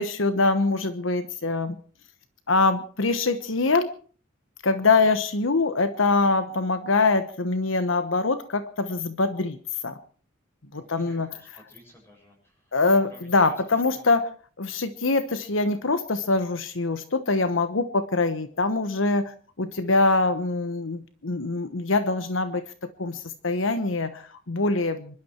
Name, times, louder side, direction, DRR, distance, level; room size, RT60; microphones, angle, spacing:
voice 1, 0.0-1.8 2.5-3.9 4.6-9.6 9.8-9.9 10.7-11.6 12.7-14.3 14.6-22.6 23.0-25.2, left 3 dB, 75° left, 11 dB, 1.1 m, -24 dB
voice 2, 10.7-12.8 13.1-13.6 13.9-14.0 14.7-14.8, left 1 dB, 10° left, -1 dB, 7.5 m, -54 dB
25.5 x 12.0 x 4.6 m, 0.42 s
head